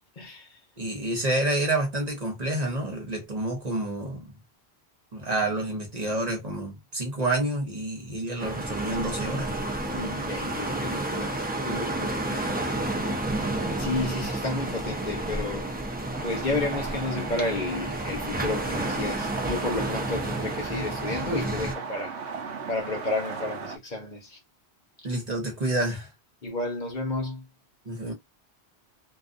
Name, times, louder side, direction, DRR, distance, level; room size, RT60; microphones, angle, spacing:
voice 1, 0.2-0.6 9.9-11.4 11.7-12.7 13.8-15.7 16.2-22.2 22.7-24.4 26.4-27.5, left 2 dB, 50° left, 0.9 m, -32 dB
voice 2, 0.8-4.3 5.1-9.6 25.0-26.1 27.8-28.1, right 1 dB, 40° right, 0.9 m, -28 dB
sound 1, 8.4-21.7, right 2 dB, 15° right, 0.3 m, -31 dB
sound 2, 16.1-23.8, right 5 dB, 85° right, 0.9 m, -37 dB
2.5 x 2.3 x 2.4 m
omnidirectional pair, 1.1 m